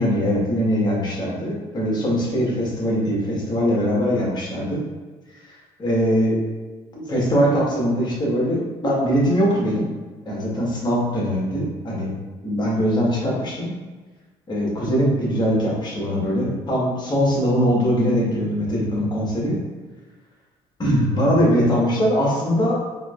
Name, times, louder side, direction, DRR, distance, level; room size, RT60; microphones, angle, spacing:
voice 1, 0.0-4.8 5.8-6.4 6.9-9.9 10.2-12.1 12.4-13.7 14.5-19.6 20.8-22.8, equal, 30° left, -4 dB, 1.5 m, -21 dB
3.8 x 3.1 x 2.5 m, 1.3 s
supercardioid pair, 80°, 14 cm